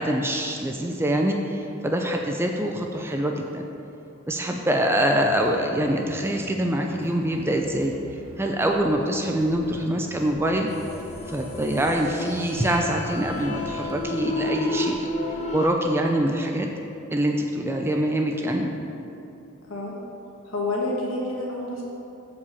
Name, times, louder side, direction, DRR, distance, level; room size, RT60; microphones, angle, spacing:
voice 1, 0.0-3.6 4.3-10.7 11.3-15.1 15.5-16.7 17.1-18.7, right 1 dB, 10° right, 2 dB, 0.4 m, -24 dB
sound 1, 5.3-13.9, right 1 dB, 65° right, 0.8 m, -46 dB
sound 2, 10.7-15.7, left 2 dB, 30° left, 0.9 m, -31 dB
voice 2, 20.4-21.8, left 2 dB, 60° left, -3 dB, 1.7 m, -28 dB
7.0 x 4.9 x 7.1 m, 2.8 s
head